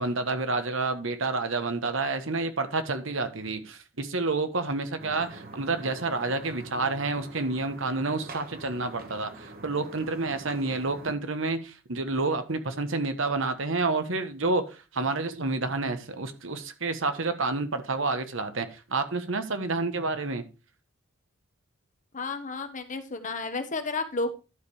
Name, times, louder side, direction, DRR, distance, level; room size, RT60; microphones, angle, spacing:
voice 1, 0.0-14.6 14.9-20.4, right 3 dB, 65° right, 1.3 m, -29 dB
sound 1, 5.0-11.1, right 2 dB, 45° right, 1.3 m, -45 dB
voice 2, 22.1-24.3, left 3 dB, 40° left, 1.2 m, -32 dB
11.5 x 5.1 x 4.8 m
head